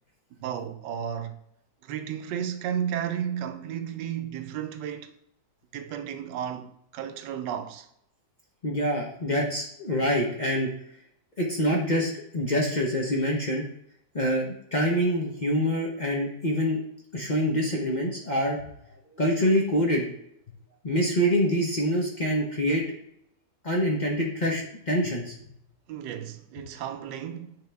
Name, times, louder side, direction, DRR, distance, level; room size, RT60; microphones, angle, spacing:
voice 1, 0.4-1.4 1.8-5.1 5.7-7.9 25.9-27.5, right 9 dB, 85° right, 1.3 m, -33 dB
voice 2, 8.6-10.7 11.4-13.6 14.1-16.8 17.1-18.6 19.2-20.1 20.8-22.8 23.6-25.3, equal, 40° left, 0.7 m, -25 dB
8.6 x 3.7 x 3.4 m
omnidirectional pair, 1.8 m